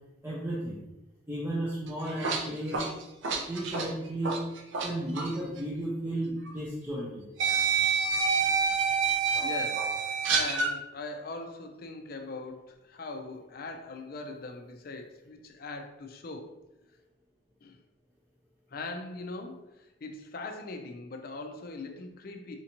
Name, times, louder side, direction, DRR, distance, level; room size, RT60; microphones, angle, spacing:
voice 1, 0.2-0.8 1.3-2.9 3.5-4.4 4.8-7.3, right 1 dB, 10° right, -6 dB, 0.5 m, -34 dB
sound 1, 1.9-4.9 5.1-5.3 6.5-6.6 7.4-10.7, right 5 dB, 70° right, 0.5 m, -27 dB
voice 2, 9.4-16.6 17.6-17.8 18.7-22.5, left 3 dB, 50° left, 5 dB, 0.4 m, -41 dB
4.3 x 2.6 x 2.9 m, 0.92 s
head